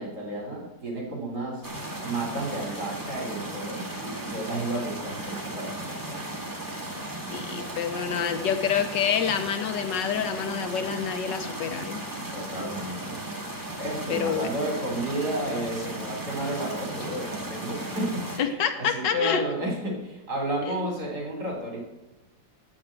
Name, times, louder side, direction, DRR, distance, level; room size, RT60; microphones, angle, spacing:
voice 1, 0.0-1.6 2.0-6.2 7.6-7.8 12.3-13.2 13.8-21.8, right 1 dB, 55° right, -1 dB, 4.1 m, -32 dB
sound 1, 1.6-18.4, right 1 dB, 10° right, 1.9 m, -36 dB
voice 2, 7.3-12.0 14.1-14.5 18.4-19.4 20.7-20.8, left 7 dB, 70° left, 8 dB, 1.5 m, -27 dB
8.7 x 8.5 x 7.9 m, 0.99 s
omnidirectional pair, 2.1 m